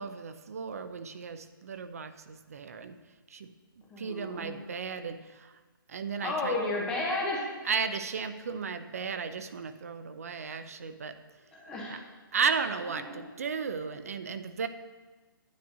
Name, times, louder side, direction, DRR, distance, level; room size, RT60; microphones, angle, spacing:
voice 1, 0.0-3.0 3.3-3.5 4.0-5.6 5.9-6.6 7.6-11.2 11.9-12.0 12.3-14.7, right 5 dB, 40° right, 10 dB, 0.4 m, -34 dB
voice 2, 3.9-4.5 6.2-7.5 11.5-12.0 13.0-13.2, left 2 dB, 5° left, -3 dB, 0.8 m, -32 dB
9.4 x 9.3 x 2.6 m, 1.3 s
hypercardioid pair, 175°, 12 cm